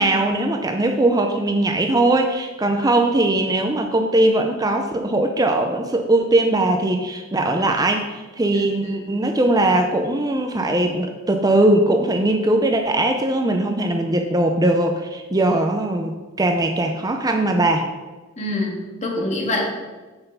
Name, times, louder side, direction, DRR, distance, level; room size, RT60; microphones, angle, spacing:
voice 1, 0.0-17.8, right 1 dB, 20° right, 4 dB, 0.6 m, -20 dB
voice 2, 8.5-9.0 18.4-19.7, left 1 dB, 35° left, 1 dB, 1.8 m, -26 dB
8.1 x 7.0 x 5.5 m, 1.2 s
head